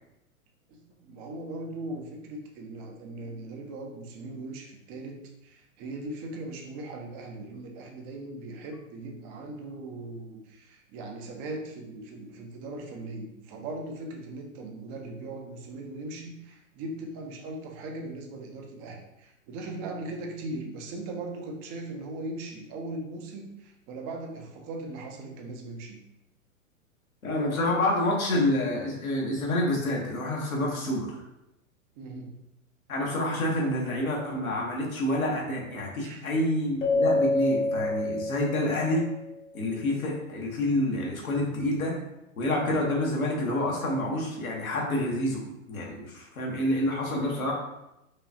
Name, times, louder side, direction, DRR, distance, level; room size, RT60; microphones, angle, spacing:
voice 1, 0.7-26.0 32.0-32.3 33.6-33.7 36.0-36.3, right 2 dB, 20° right, 2 dB, 0.4 m, -39 dB
voice 2, 27.2-31.2 32.9-39.1 39.5-41.9 42.4-47.5, left 1 dB, 80° left, -2 dB, 1.2 m, -28 dB
Keyboard (musical), 36.8-39.3, left 2 dB, 60° left, 1.0 m, -27 dB
4.8 x 2.3 x 2.7 m, 0.90 s
hypercardioid pair, 115°, 42 cm